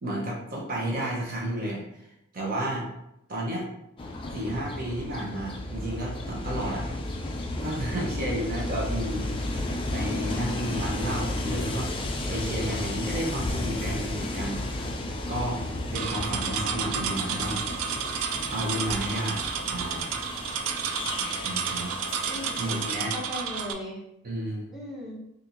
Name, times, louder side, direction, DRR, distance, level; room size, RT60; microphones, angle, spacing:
voice 1, 0.0-2.1 2.3-2.9 3.3-3.7 4.3-6.9 7.6-9.6 9.9-14.6 15.3-15.6 15.9-17.7 18.5-19.4 19.7-20.1 21.2-21.9 22.6-23.1 24.2-24.7, right 1 dB, 45° right, -2 dB, 0.7 m, -32 dB
Train, 4.0-23.0, left 1 dB, 25° left, 0.3 m, -33 dB
sound 1, 15.9-23.7, right 7 dB, 85° right, 0.3 m, -31 dB
voice 2, 22.3-24.0 24.7-25.2, left 1 dB, ahead, -7 dB, 0.9 m, -38 dB
4.2 x 2.5 x 2.6 m, 0.82 s
head